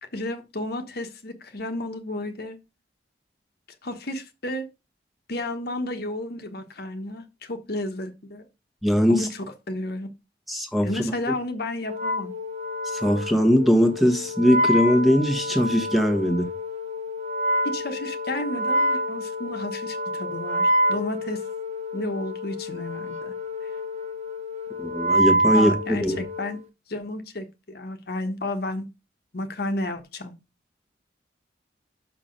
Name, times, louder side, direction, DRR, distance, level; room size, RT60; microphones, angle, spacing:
voice 1, 0.0-2.6 3.8-4.7 5.3-8.5 9.1-10.1 10.8-12.3 17.6-21.4 21.9-23.3 23.6-23.7 25.5-26.6 26.9-28.8 29.3-30.3, left 1 dB, 60° left, 1.2 m, -32 dB
voice 2, 8.8-9.3 10.5-11.0 12.8-16.5 24.8-26.2, equal, ahead, 1.3 m, -21 dB
Wind instrument woodwind instrument, 11.9-26.6, equal, 40° right, 1.2 m, -27 dB
5.9 x 5.8 x 5.2 m
head